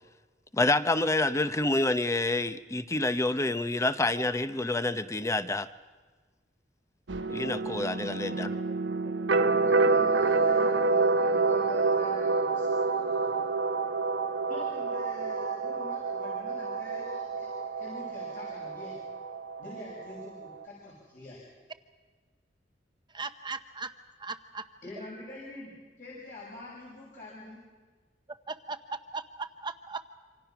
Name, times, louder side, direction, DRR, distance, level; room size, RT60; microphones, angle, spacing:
voice 1, 0.5-5.7 7.3-8.5, left 2 dB, 15° left, 12 dB, 0.7 m, -28 dB
sound 1, 7.1-20.6, right 3 dB, 85° right, 1.0 m, -28 dB
voice 2, 8.2-8.5 9.0-13.4 14.5-17.5 17.8-19.0 19.6-21.4 24.8-27.6, left 2 dB, 50° left, -5 dB, 7.1 m, -46 dB
voice 3, 23.1-23.9 24.2-24.7 28.3-30.0, right 4 dB, 25° right, 8 dB, 0.8 m, -38 dB
27.0 x 26.0 x 6.0 m, 1.4 s
head